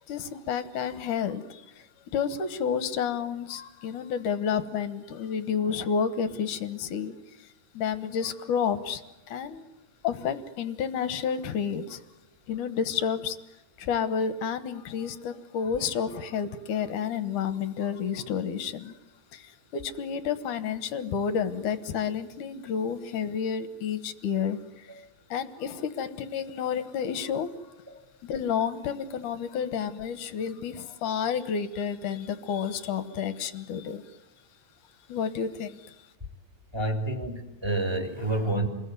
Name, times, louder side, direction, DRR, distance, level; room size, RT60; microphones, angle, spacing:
voice 1, 0.1-1.9 2.1-7.1 7.7-9.0 9.3-9.7 10.0-12.0 12.5-13.4 13.8-18.9 19.3-24.9 25.3-27.5 28.2-34.0 35.1-36.0, left 7 dB, 65° left, 13 dB, 2.1 m, -30 dB
voice 2, 36.7-38.7, right 2 dB, 10° right, 6 dB, 2.1 m, -29 dB
28.0 x 22.0 x 9.5 m, 1.0 s
omnidirectional pair, 4.8 m